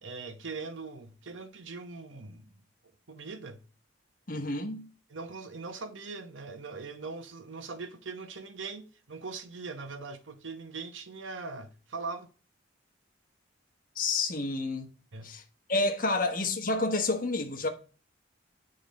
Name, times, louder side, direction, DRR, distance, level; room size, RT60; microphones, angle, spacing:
voice 1, 0.0-2.6 3.1-3.6 5.1-12.3 15.1-15.3 16.1-16.2, right 4 dB, 80° right, 1.0 m, -41 dB
voice 2, 4.3-4.8 13.9-14.9 15.2-15.4 15.7-17.7, left 2 dB, 45° left, 1.3 m, -29 dB
8.7 x 3.9 x 5.2 m
head